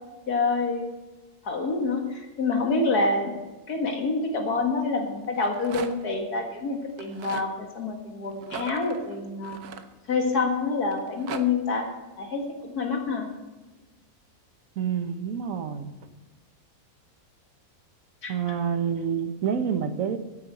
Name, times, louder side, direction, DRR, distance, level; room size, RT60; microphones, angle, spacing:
voice 1, 0.3-0.8 1.4-3.4 3.7-9.6 10.1-11.9 12.2-13.3 18.2-18.3, left 3 dB, 85° left, 2 dB, 2.4 m, -27 dB
Rattle, 5.2-6.2 6.9-7.5 8.4-10.4 10.9-11.4, right 7 dB, 80° right, 1.4 m, -39 dB
voice 2, 14.8-15.9 18.3-20.2, right 7 dB, 60° right, 9 dB, 1.4 m, -28 dB
13.5 x 8.6 x 7.8 m, 1.2 s
omnidirectional pair, 1.6 m